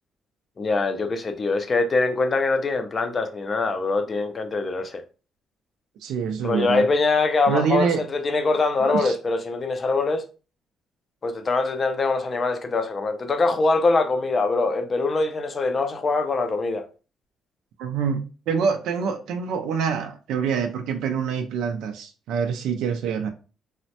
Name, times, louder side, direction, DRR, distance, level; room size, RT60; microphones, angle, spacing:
voice 1, 0.6-5.0 6.4-10.3 11.2-16.9, left 3 dB, 25° left, 0.3 m, -23 dB
voice 2, 6.0-6.8 7.5-8.0 8.8-9.1 17.8-23.3, right 6 dB, 90° right, 0.3 m, -26 dB
3.0 x 2.0 x 2.8 m
cardioid pair, 170°, 0 cm